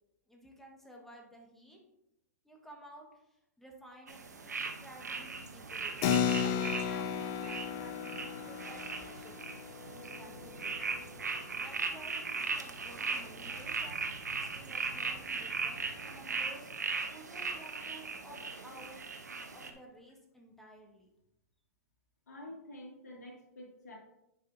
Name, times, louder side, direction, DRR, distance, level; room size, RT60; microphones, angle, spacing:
voice 1, 0.3-1.8 2.4-6.0 6.4-9.4 9.8-10.8 11.5-16.7 17.1-18.4 18.6-19.0 19.5-21.1, right 1 dB, 5° left, 1 dB, 1.5 m, -54 dB
sound 1, 4.1-19.7, right 4 dB, 85° right, 0.8 m, -39 dB
Keyboard (musical), 6.0-12.0, left 8 dB, 40° left, 0.6 m, -35 dB
voice 2, 22.3-23.9, left 1 dB, 75° left, 0 dB, 2.2 m, -48 dB
9.8 x 5.4 x 2.7 m, 0.86 s
hypercardioid pair, 110°, 9 cm